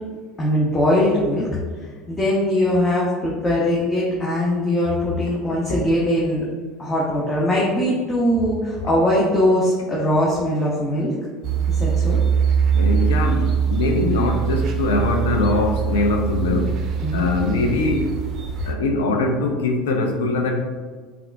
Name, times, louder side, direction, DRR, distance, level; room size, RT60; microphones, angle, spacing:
voice 1, 0.4-1.5 1.8-6.5 6.8-11.1 11.7-12.2 17.0-17.3, left 1 dB, 25° left, -6 dB, 0.6 m, -21 dB
sound 1, 11.4-18.7, right 6 dB, 55° right, 0.4 m, -22 dB
voice 2, 12.7-16.8 17.1-18.2 18.6-20.6, left 2 dB, 90° left, 3 dB, 0.4 m, -22 dB
3.5 x 2.3 x 2.2 m, 1.5 s
supercardioid pair, 95°, 0 cm